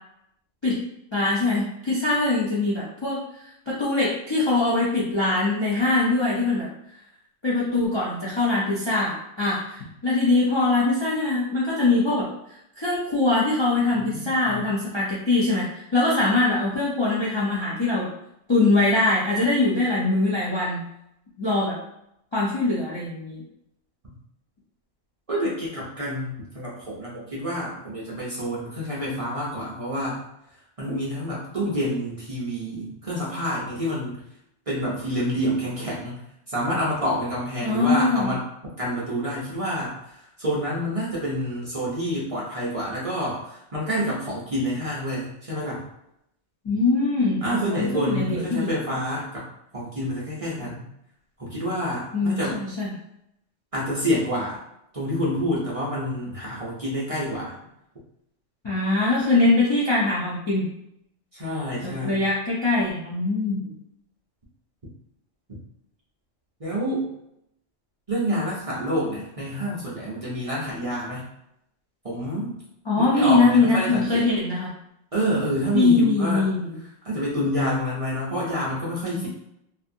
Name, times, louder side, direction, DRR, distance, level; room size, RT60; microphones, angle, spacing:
voice 1, 1.1-3.2 3.7-6.7 7.4-12.3 12.8-15.7 15.9-18.1 18.5-20.8 21.4-21.8 22.3-23.4 37.6-38.3 46.6-48.8 52.1-52.9 58.6-60.7 61.8-63.7 72.9-74.7 75.7-76.8 79.1-79.3, left 2 dB, 45° left, -7 dB, 0.3 m, -22 dB
voice 2, 25.3-30.2 30.8-34.2 34.7-36.2 36.5-38.4 38.8-45.8 47.4-49.4 49.7-50.8 51.4-52.5 53.7-54.6 54.9-57.5 61.3-62.2 66.6-67.1 68.1-71.2 72.0-72.6 72.9-74.3 75.1-76.4 77.0-79.3, equal, 40° right, -7 dB, 0.5 m, -28 dB
2.6 x 2.3 x 2.6 m, 0.79 s
omnidirectional pair, 1.3 m